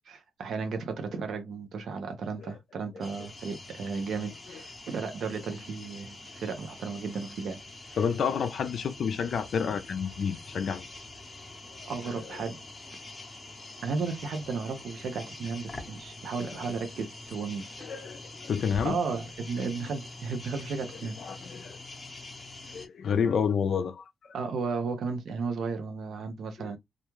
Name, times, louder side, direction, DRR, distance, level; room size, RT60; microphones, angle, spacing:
voice 1, 0.1-7.6 7.9-8.0 11.9-12.6 13.8-17.7 18.8-21.2 24.3-26.8, right 4 dB, 70° right, 0.6 m, -34 dB
sound 1, 3.0-22.9, left 2 dB, 25° left, 0.7 m, -45 dB
voice 2, 8.0-10.9 11.8-12.4 16.4-16.5 17.8-19.0 21.2-21.8 22.7-24.0 26.6-26.7, left 7 dB, 65° left, 0.4 m, -30 dB
2.4 x 2.2 x 3.0 m
cardioid pair, 95°, 0 cm